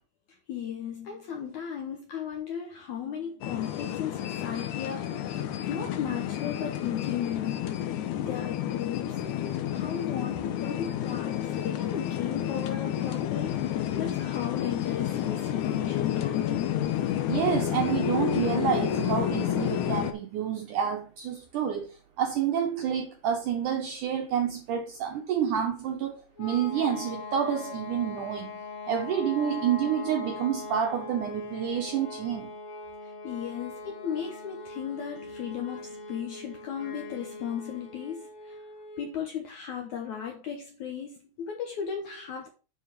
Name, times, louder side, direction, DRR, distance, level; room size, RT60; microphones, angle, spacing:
voice 1, 0.5-7.8 8.2-9.2 9.7-13.6 13.9-16.8 33.0-38.7 39.0-42.5, left 8 dB, 70° left, 1.9 m, -36 dB
sound 1, 3.4-20.1, left 11 dB, 85° left, 1.7 m, -30 dB
voice 2, 17.3-21.9 22.2-28.6 28.9-32.5, right 8 dB, 75° right, 1.9 m, -29 dB
sound 2, 26.4-39.2, left 3 dB, 35° left, 3.0 m, -41 dB
9.7 x 4.7 x 5.0 m
omnidirectional pair, 4.8 m